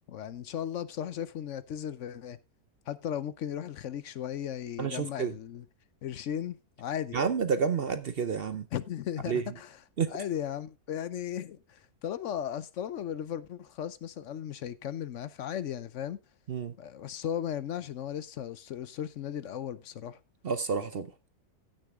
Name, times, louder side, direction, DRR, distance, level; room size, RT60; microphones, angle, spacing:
voice 1, 0.1-2.4 2.9-5.6 6.0-7.2 8.7-9.8 10.1-16.2 16.8-20.2, left 9 dB, 60° left, 0.9 m, -36 dB
voice 2, 4.8-5.3 7.1-8.7 9.3-9.4 10.0-10.1 16.5-16.7 20.4-21.1, right 6 dB, 50° right, 0.7 m, -29 dB
15.5 x 6.6 x 3.5 m
omnidirectional pair, 1.6 m